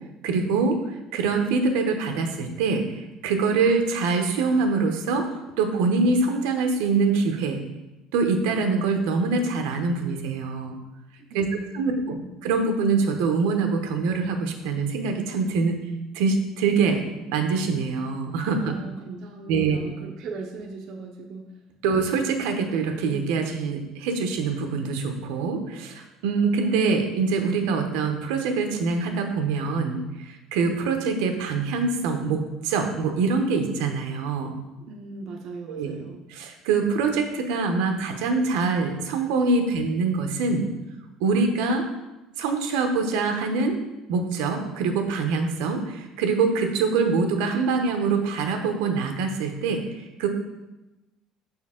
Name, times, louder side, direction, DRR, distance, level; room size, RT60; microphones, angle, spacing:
voice 1, 0.2-0.8 1.1-2.8 3.2-7.6 8.1-10.7 11.3-11.4 11.7-12.1 12.4-15.8 16.1-17.0 17.3-18.7 19.5-19.8 21.8-34.5 35.7-36.0 36.3-40.7 41.2-41.9 42.4-43.8 44.1-50.3, right 4 dB, 80° right, 4 dB, 0.8 m, -24 dB
voice 2, 11.3-12.3 18.6-21.5 34.8-36.2, right 3 dB, 45° right, 1 dB, 0.6 m, -38 dB
6.5 x 4.4 x 3.7 m, 1.0 s
cardioid pair, 170°, 0 cm